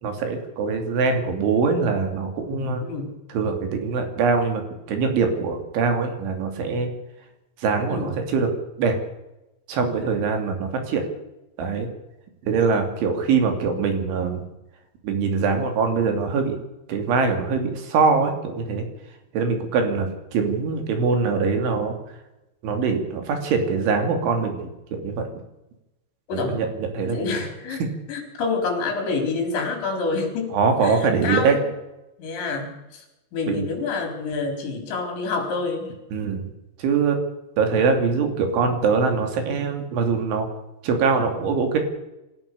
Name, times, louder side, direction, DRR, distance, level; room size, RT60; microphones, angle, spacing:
voice 1, 0.0-2.9 3.3-4.6 4.9-6.9 7.6-8.5 8.8-9.0 9.7-11.0 11.6-11.9 12.4-14.4 15.0-16.6 16.9-18.9 19.3-22.0 22.6-25.3 26.3-27.4 27.8-27.9 30.5-31.6 33.5-33.7 36.1-36.5 36.8-37.2 37.6-40.5 40.8-41.8, right 5 dB, 75° right, 5 dB, 5.1 m, -23 dB
voice 2, 2.8-3.1 7.9-8.1 26.3-26.6 27.1-27.8 28.1-30.5 30.8-31.7 32.2-33.0 33.3-35.9, left 4 dB, 65° left, 3 dB, 6.4 m, -27 dB
27.0 x 14.5 x 6.9 m, 0.95 s
omnidirectional pair, 5.6 m